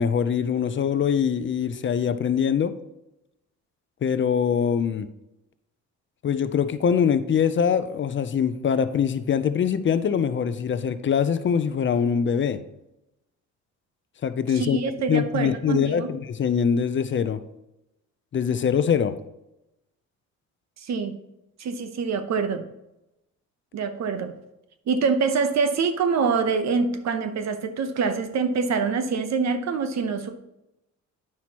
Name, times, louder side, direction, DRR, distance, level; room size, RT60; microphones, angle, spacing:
voice 1, 0.0-2.7 4.0-5.1 6.2-12.6 14.2-14.8 15.1-17.4 18.3-19.2, left 7 dB, 40° left, 0.5 m, -23 dB
voice 2, 14.5-16.1 20.8-21.1 21.6-22.7 23.7-24.3 24.9-30.3, right 5 dB, 60° right, 0.9 m, -25 dB
9.6 x 6.0 x 2.9 m
cardioid pair, 90°, 30 cm